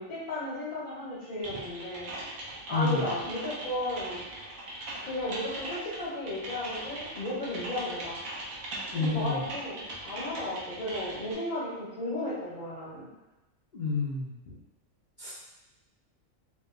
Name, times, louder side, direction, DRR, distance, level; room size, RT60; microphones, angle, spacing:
voice 1, 0.0-2.1 2.7-4.3 5.0-8.2 8.9-13.1, left 1 dB, 85° left, -7 dB, 1.2 m, -34 dB
Typing, 1.4-11.3, right 1 dB, 80° right, 1.1 m, -40 dB
voice 2, 2.7-3.0 8.9-9.4 13.7-14.3 15.2-15.3, left 3 dB, 70° left, -9 dB, 0.4 m, -29 dB
3.2 x 2.0 x 2.2 m, 1.0 s
omnidirectional pair, 1.4 m